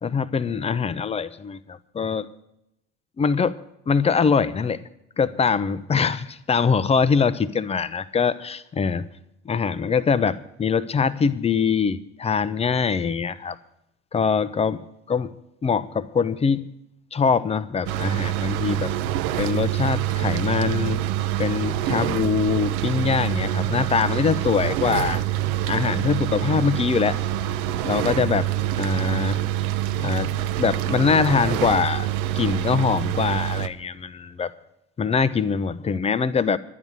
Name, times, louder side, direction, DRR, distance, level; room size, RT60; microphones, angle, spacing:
voice 1, 0.0-2.3 3.2-3.6 3.9-4.8 5.2-9.1 9.4-13.6 14.1-14.8 15.1-15.3 15.6-16.7 17.1-18.9 19.4-21.0 21.4-25.2 25.7-27.2 27.8-28.5 28.8-29.4 30.0-30.3 30.6-32.1 32.4-34.5 35.0-36.6, left 6 dB, 15° left, 0.6 m, -23 dB
sound 1, 17.9-33.7, right 12 dB, 55° right, 0.7 m, -26 dB
12.0 x 9.4 x 7.7 m
figure-of-eight pair, 60°, 37 cm